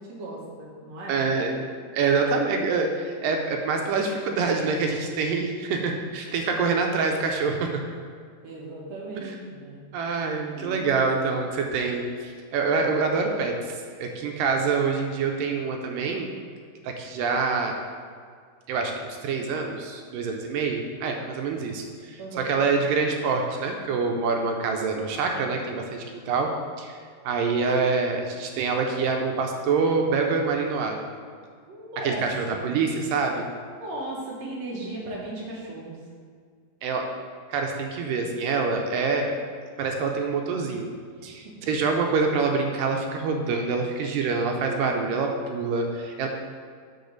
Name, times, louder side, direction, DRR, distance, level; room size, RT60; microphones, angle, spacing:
voice 1, 0.0-1.2 6.5-6.8 8.4-9.8 10.3-10.9 22.2-22.5 31.7-32.6 33.8-36.0 41.5-41.7, right 1 dB, 60° right, -4 dB, 2.1 m, -37 dB
voice 2, 1.1-1.6 1.9-7.8 9.2-9.3 9.9-16.3 16.8-17.8 18.7-18.9 19.2-22.2 22.5-26.5 26.8-27.0 27.3-31.0 32.1-33.5 36.8-37.1 37.5-39.3 39.8-40.9 41.2-46.3, right 4 dB, 80° right, 2 dB, 2.3 m, -26 dB
6.7 x 6.6 x 4.0 m, 2.1 s
omnidirectional pair, 3.9 m